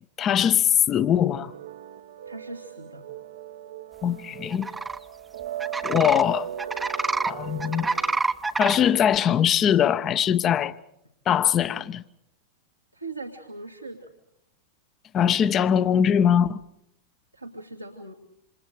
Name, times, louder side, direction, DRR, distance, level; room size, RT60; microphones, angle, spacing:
voice 1, 0.2-1.5 4.0-4.7 5.8-6.5 7.2-7.9 8.6-10.7 11.3-12.0 15.1-16.6, left 9 dB, 30° left, 1.1 m, -21 dB
sound 1, 1.3-8.2, right 10 dB, 60° right, 1.1 m, -38 dB
voice 2, 2.3-3.0 12.9-14.1 17.3-18.1, right 2 dB, 90° right, 2.2 m, -39 dB
sound 2, 4.5-5.0 5.6-6.2 6.6-7.3 7.6-8.8, right 3 dB, 10° right, 1.0 m, -27 dB
28.5 x 27.5 x 4.9 m
figure-of-eight pair, 90°, 0 cm